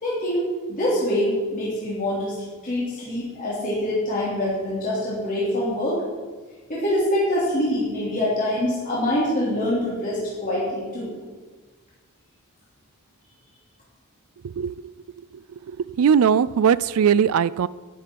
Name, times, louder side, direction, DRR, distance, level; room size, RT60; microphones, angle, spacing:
voice 1, 0.0-6.0 6.7-11.2, left 1 dB, 35° left, -8 dB, 3.1 m, -25 dB
voice 2, 14.4-14.9 15.7-17.7, right 7 dB, 70° right, 19 dB, 0.3 m, -20 dB
11.0 x 10.5 x 4.6 m, 1.3 s
head